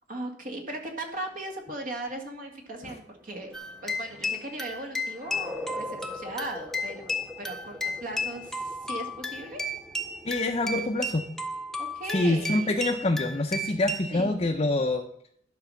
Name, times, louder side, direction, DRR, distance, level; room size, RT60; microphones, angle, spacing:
voice 1, 0.1-3.5 3.8-9.6 11.8-12.7 14.1-14.4, right 1 dB, 50° right, 3 dB, 2.0 m, -38 dB
sound 1, 2.7-14.2, left 1 dB, 15° right, 1.3 m, -45 dB
sound 2, 3.5-14.1, left 1 dB, 5° left, 0.9 m, -34 dB
voice 2, 10.2-11.2 12.1-15.0, left 2 dB, 35° left, 1 dB, 0.7 m, -26 dB
11.0 x 6.3 x 5.6 m, 0.64 s
head